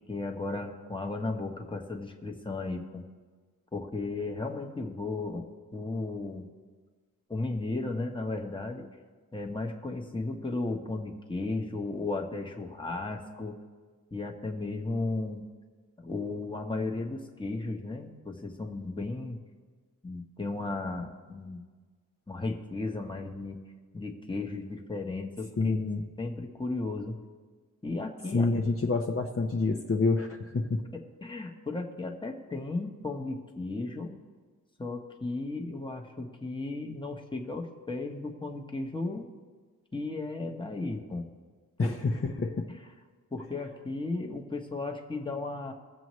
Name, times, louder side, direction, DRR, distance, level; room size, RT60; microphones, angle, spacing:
voice 1, 0.1-3.0 3.7-6.5 7.3-8.9 9.3-13.6 14.1-15.4 16.0-19.4 20.0-21.6 22.3-23.6 23.9-25.7 26.2-27.2 27.8-28.5 30.9-34.1 34.8-39.3 39.9-41.2 41.8-41.9 43.3-45.7, left 2 dB, 15° left, 2 dB, 1.1 m, -35 dB
voice 2, 25.6-26.0 28.3-30.8 41.8-42.7, left 3 dB, 40° left, 0 dB, 0.8 m, -27 dB
22.5 x 7.7 x 3.1 m, 1.5 s
wide cardioid pair, 120°, 36 cm